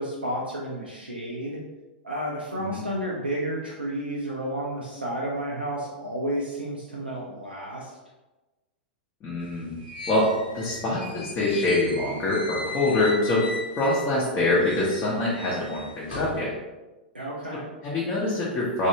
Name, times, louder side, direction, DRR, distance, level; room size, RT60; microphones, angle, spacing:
voice 1, 0.0-1.6 2.0-8.0 17.1-17.7, right 1 dB, 90° right, -4 dB, 0.5 m, -31 dB
voice 2, 9.2-9.7 10.1-16.5 17.8-18.9, left 2 dB, 30° left, -6 dB, 0.8 m, -25 dB
sound 1, 9.4-14.1 14.5-16.4, left 2 dB, 75° left, 1.1 m, -38 dB
3.1 x 2.6 x 2.8 m, 1.1 s
figure-of-eight pair, 100°, 5 cm